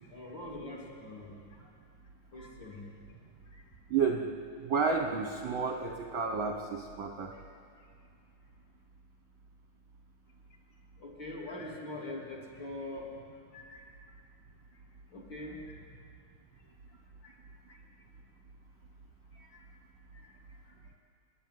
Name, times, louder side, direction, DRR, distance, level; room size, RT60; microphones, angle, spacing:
voice 1, 0.1-1.7 2.3-2.9 3.5-3.6 7.3-7.4 11.0-13.1 13.5-13.9 15.1-15.8 17.2-17.4 17.7-17.8 19.3-19.6 20.1-20.3 20.7-20.8, left 2 dB, 40° left, -3 dB, 3.9 m, -44 dB
voice 2, 3.9-4.3 4.6-7.3, right 5 dB, 55° right, 2 dB, 1.5 m, -31 dB
28.0 x 11.0 x 9.5 m, 2.3 s
omnidirectional pair, 3.4 m